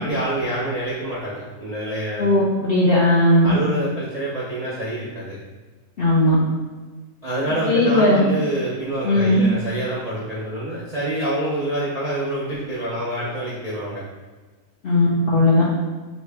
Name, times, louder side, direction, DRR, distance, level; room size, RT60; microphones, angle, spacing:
voice 1, 0.0-2.3 3.4-5.4 7.2-14.0, right 1 dB, 45° right, -9 dB, 0.5 m, -26 dB
voice 2, 2.2-3.5 6.0-6.4 7.7-8.3 9.0-9.4 14.8-15.7, left 1 dB, 60° left, -7 dB, 0.6 m, -17 dB
3.0 x 2.7 x 3.4 m, 1.3 s
omnidirectional pair, 1.6 m